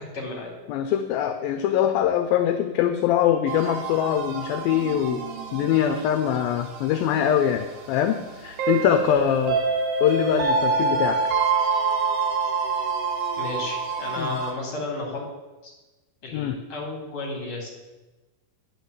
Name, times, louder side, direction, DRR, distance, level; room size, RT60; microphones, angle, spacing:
voice 1, 0.0-0.5 13.4-15.2 15.6-15.7 16.2-17.7, left 2 dB, 35° left, -1 dB, 3.7 m, -33 dB
voice 2, 0.7-5.2 5.5-9.6 10.0-11.2 14.2-14.4 16.3-16.6, left 10 dB, 80° left, 8 dB, 2.3 m, -23 dB
sound 1, 3.5-14.5, right 4 dB, 70° right, 3.4 m, -27 dB
10.0 x 6.5 x 8.1 m, 1.1 s
omnidirectional pair, 4.4 m